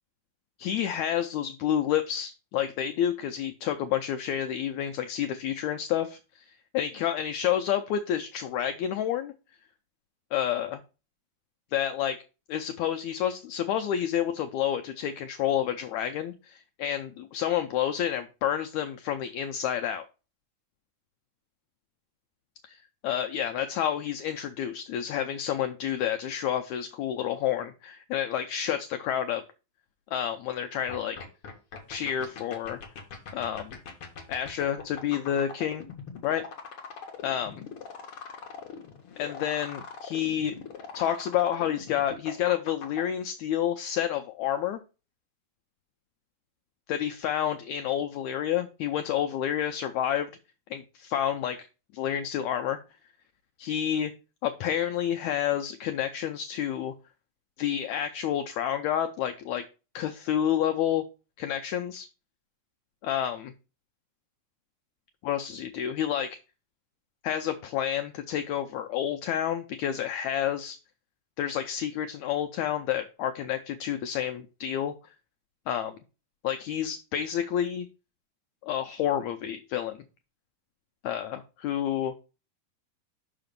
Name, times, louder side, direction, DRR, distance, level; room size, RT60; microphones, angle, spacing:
voice 1, 0.6-6.4 6.7-9.3 10.3-10.8 11.7-12.2 12.5-20.0 22.6-29.4 30.1-31.2 31.9-32.8 33.3-33.8 34.3-35.8 36.2-36.4 37.2-37.6 39.2-40.5 40.9-44.8 46.9-50.3 50.7-51.7 51.9-52.8 53.6-54.1 54.4-56.9 57.6-59.6 59.9-61.0 61.4-62.1 63.0-63.5 65.2-66.4 67.2-70.8 71.4-74.9 75.7-76.0 76.4-77.9 78.6-80.0 81.0-82.1, left 10 dB, 85° left, 7 dB, 1.6 m, -29 dB
sound 1, 30.9-43.0, left 6 dB, 55° left, 1.9 m, -41 dB
5.8 x 5.0 x 5.2 m, 0.33 s
omnidirectional pair, 3.8 m